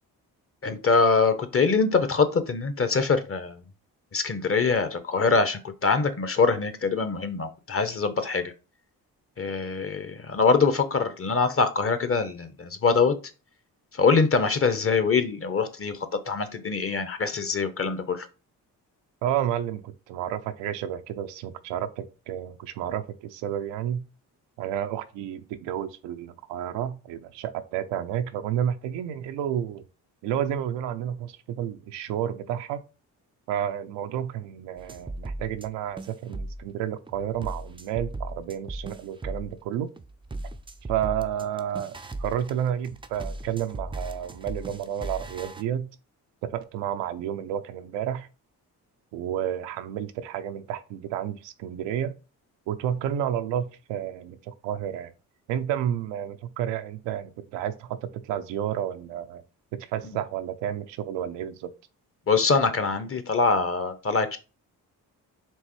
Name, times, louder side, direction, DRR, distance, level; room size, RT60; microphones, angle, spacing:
voice 1, 0.6-3.6 4.1-8.5 9.4-13.1 13.9-16.0 16.3-18.3 62.3-64.4, left 4 dB, 30° left, 0.8 m, -24 dB
voice 2, 19.2-24.0 24.6-29.8 30.2-32.8 33.5-39.9 40.9-45.9 46.4-48.3 49.1-52.1 52.7-55.1 55.5-59.4 59.7-61.7, right 10 dB, 85° right, 0.6 m, -31 dB
sound 1, 34.8-35.7 36.0-36.7 37.1-39.6 40.0-45.6, right 2 dB, 15° right, 0.4 m, -37 dB
4.5 x 3.1 x 3.1 m
supercardioid pair, 50°, 42 cm